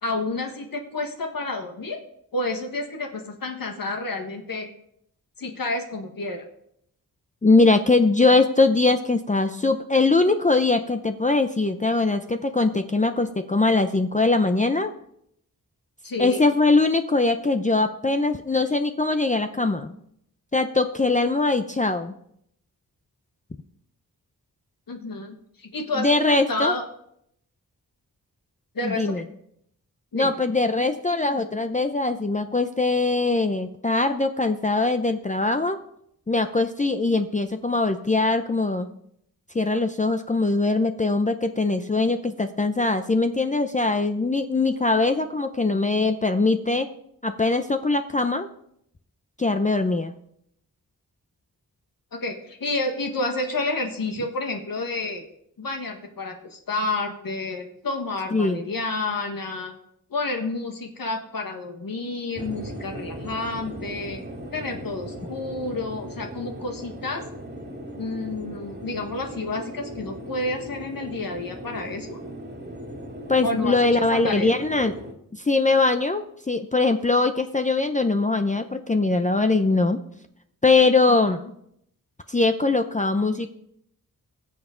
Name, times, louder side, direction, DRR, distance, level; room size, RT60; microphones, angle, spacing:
voice 1, 0.0-2.0 2.3-4.7 5.4-6.4 16.0-16.4 24.9-26.8 28.7-29.1 30.1-30.3 52.1-55.2 55.6-59.7 60.1-64.2 64.5-67.2 68.0-72.2 73.4-74.5 81.1-81.4, left 2 dB, 65° left, 3 dB, 1.6 m, -30 dB
voice 2, 7.4-14.9 16.2-19.9 20.5-22.1 26.0-26.7 28.8-29.2 30.1-35.8 36.3-38.9 39.5-46.9 47.2-48.5 49.4-50.1 58.3-58.6 73.3-74.9 75.3-80.0 80.6-81.4 82.3-83.5, left 3 dB, 20° left, 7 dB, 0.6 m, -22 dB
sound 1, 62.3-75.1, equal, 25° right, 2.1 m, -38 dB
20.0 x 7.1 x 3.8 m, 0.73 s
wide cardioid pair, 95°, 37 cm